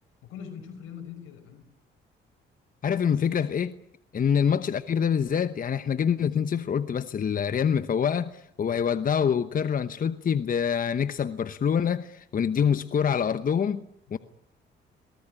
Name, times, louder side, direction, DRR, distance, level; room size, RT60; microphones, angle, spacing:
voice 1, 0.2-1.7 14.1-14.2, left 8 dB, 90° left, 5.5 m, -43 dB
voice 2, 2.8-3.8 4.1-13.9 14.1-14.2, left 7 dB, 45° left, 1.0 m, -25 dB
23.0 x 18.5 x 9.9 m
cardioid pair, 90°, 20 cm